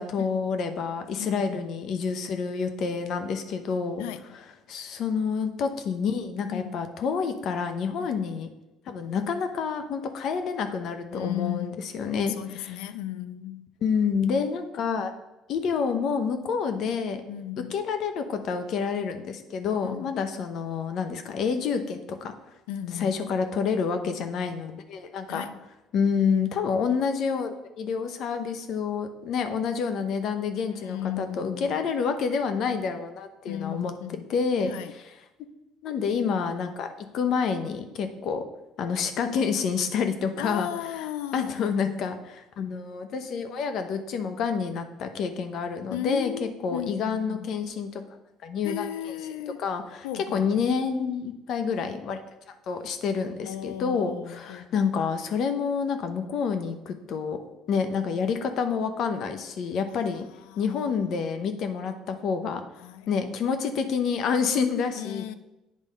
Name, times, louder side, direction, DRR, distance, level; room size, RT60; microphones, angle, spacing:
voice 1, 0.0-4.0 4.7-8.5 8.9-12.8 13.8-15.1 15.5-17.2 17.7-22.3 23.0-25.4 25.9-33.9 34.3-34.7 35.8-38.4 38.8-48.0 48.4-48.9 49.6-50.1 50.3-52.2 52.5-57.4 57.7-60.3 60.6-62.6 63.1-65.4, left 6 dB, 60° left, 0.8 m, -28 dB
voice 2, 1.2-1.7 4.0-4.4 6.5-6.8 8.0-8.1 11.1-11.8 12.4-13.7 17.3-17.8 19.8-20.1 22.7-23.2 25.3-25.6 30.7-31.8 33.5-34.3 34.7-34.9 40.4-41.8 45.9-47.5 48.6-49.6 50.0-50.6 53.4-54.9 60.4-60.8 62.8-63.1 64.9-65.3, left 12 dB, 85° left, 0.4 m, -36 dB
8.4 x 3.5 x 5.3 m
supercardioid pair, 80°, 0 cm